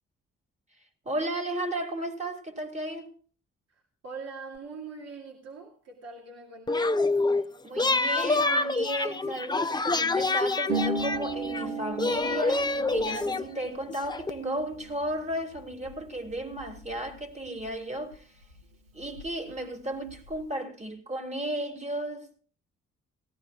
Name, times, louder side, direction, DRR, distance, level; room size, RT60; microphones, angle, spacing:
voice 1, 1.0-3.2 7.6-18.4 18.9-22.4, right 1 dB, 20° right, 2.3 m, -34 dB
voice 2, 3.7-6.9, right 4 dB, 55° right, 2.7 m, -43 dB
sound 1, 6.7-7.4 7.8-11.7 12.0-14.3, left 3 dB, 15° left, 0.7 m, -27 dB
Harp, 10.7-18.2 18.4-19.5 19.8-20.4, right 3 dB, 85° right, 1.1 m, -37 dB
18.0 x 15.0 x 2.4 m
hypercardioid pair, 45°, 31 cm